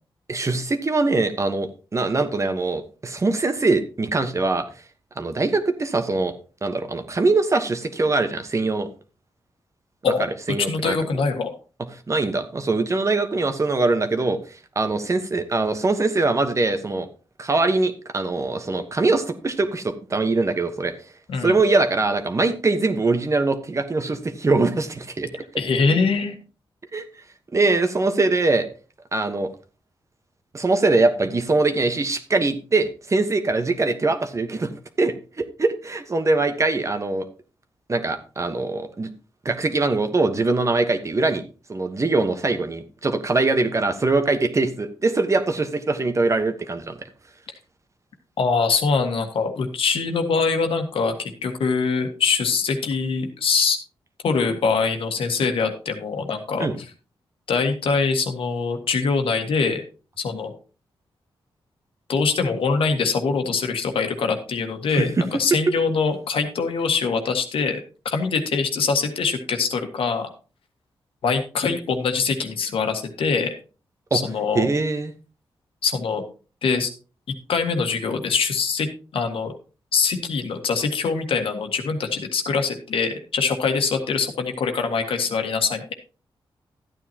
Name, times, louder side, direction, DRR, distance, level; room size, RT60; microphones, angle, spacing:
voice 1, 0.3-4.7 5.2-6.3 6.6-8.9 10.5-11.0 11.9-17.1 17.4-20.9 21.4-25.4 26.9-27.0 27.5-28.7 29.1-29.5 30.5-34.7 35.0-37.2 37.9-39.1 39.4-41.4 41.7-47.0 56.6-56.7 64.9-65.1 74.1-74.2 74.5-75.1, right 3 dB, 35° right, 8 dB, 1.2 m, -22 dB
voice 2, 10.0-11.5 21.3-21.6 25.6-26.4 48.4-53.8 54.2-56.7 57.5-59.8 60.2-60.5 62.1-67.8 68.0-70.3 71.2-73.5 74.1-74.7 75.8-76.2 76.6-76.9 77.5-78.9 79.1-79.5 79.9-85.9, left 5 dB, 85° left, 5 dB, 1.6 m, -23 dB
12.5 x 9.1 x 2.9 m, 0.35 s
cardioid pair, 95°, 9 cm